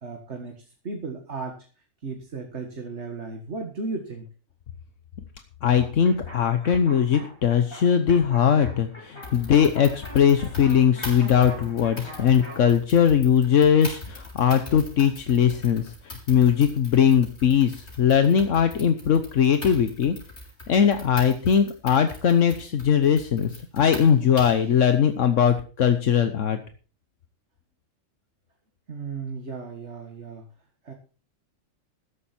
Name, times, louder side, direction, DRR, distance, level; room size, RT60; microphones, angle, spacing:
voice 1, 0.0-1.7 2.0-4.3 28.9-30.5 30.8-30.9, right 4 dB, 60° right, 4 dB, 2.0 m, -35 dB
voice 2, 5.6-20.2 20.7-26.6, left 8 dB, 75° left, 9 dB, 1.3 m, -20 dB
sound 1, 5.7-12.7, equal, 20° left, 4.9 m, -44 dB
sound 2, 9.2-24.7, left 1 dB, 60° left, 5.8 m, -41 dB
14.0 x 11.5 x 4.4 m, 0.37 s
omnidirectional pair, 1.3 m